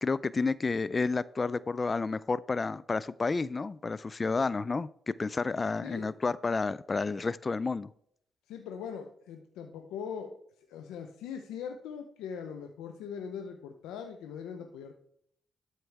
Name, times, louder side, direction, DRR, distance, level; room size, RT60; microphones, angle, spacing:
voice 1, 0.0-4.9 5.2-7.9, left 4 dB, 35° left, 18 dB, 0.3 m, -30 dB
voice 2, 5.8-6.1 8.5-10.3 10.7-14.9, left 7 dB, 85° left, 5 dB, 0.7 m, -41 dB
12.5 x 4.6 x 3.4 m, 0.67 s
supercardioid pair, 55°, 0 cm